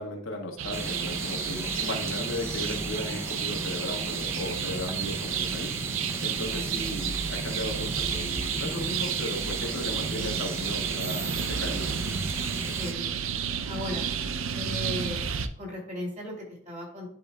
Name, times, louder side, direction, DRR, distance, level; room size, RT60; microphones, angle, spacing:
voice 1, 0.0-5.7 6.2-11.9, left 1 dB, 70° left, 1 dB, 1.5 m, -36 dB
sound 1, 0.6-15.5, right 7 dB, 75° right, 0.6 m, -32 dB
sound 2, 0.7-12.9, right 2 dB, 10° right, 0.6 m, -36 dB
voice 2, 12.7-13.3 13.7-14.1 14.5-15.2 15.6-17.1, left 1 dB, 35° right, -2 dB, 3.0 m, -36 dB
11.0 x 5.2 x 2.3 m, 0.66 s
head